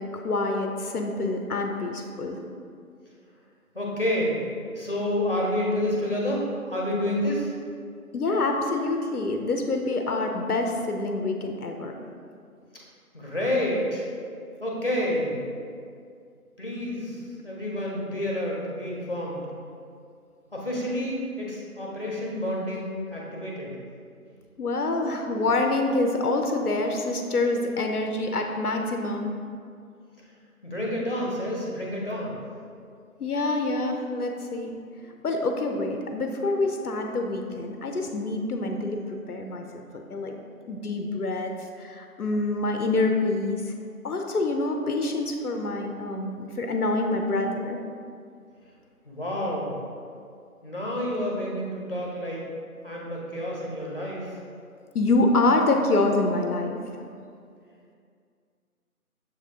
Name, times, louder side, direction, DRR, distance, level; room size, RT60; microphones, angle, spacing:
voice 1, 0.0-2.4 8.1-11.9 24.6-29.3 33.2-34.7 35.2-40.3 40.7-43.7 44.0-47.8 54.9-57.0, left 2 dB, 80° left, 4 dB, 0.6 m, -26 dB
voice 2, 3.7-4.4 4.8-7.5 13.1-14.1 14.6-15.4 16.6-19.5 20.5-23.7 30.6-32.3 49.1-49.7 50.6-52.5 52.8-54.3, left 1 dB, 40° left, -3 dB, 0.7 m, -29 dB
6.8 x 2.6 x 2.7 m, 2.3 s
figure-of-eight pair, 165°, 45 cm